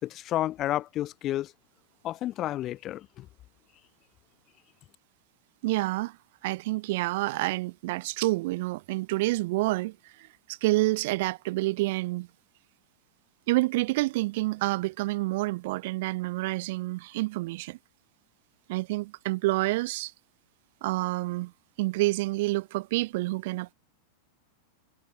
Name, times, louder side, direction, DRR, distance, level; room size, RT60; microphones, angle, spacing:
voice 1, 0.0-1.5 2.0-3.2, left 13 dB, 35° left, 3.3 m, -31 dB
voice 2, 5.6-6.2 6.4-12.3 13.5-17.8 18.7-20.1 20.8-21.5 21.8-23.7, right 20 dB, 60° right, 2.2 m, -28 dB
supercardioid pair, 130°, 0 cm